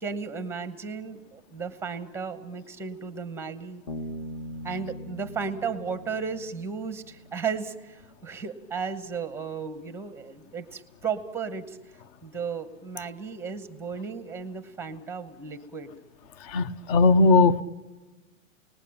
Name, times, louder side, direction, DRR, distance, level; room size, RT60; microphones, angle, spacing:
voice 1, 0.0-3.8 4.6-11.8 12.2-15.9, right 5 dB, 5° right, 12 dB, 1.0 m, -34 dB
Bass guitar, 3.9-7.4, equal, 50° left, 1.9 m, -40 dB
voice 2, 16.5-17.6, left 3 dB, 30° left, 17 dB, 0.8 m, -19 dB
29.0 x 19.5 x 8.7 m, 1.2 s
hypercardioid pair, 155°, 40 cm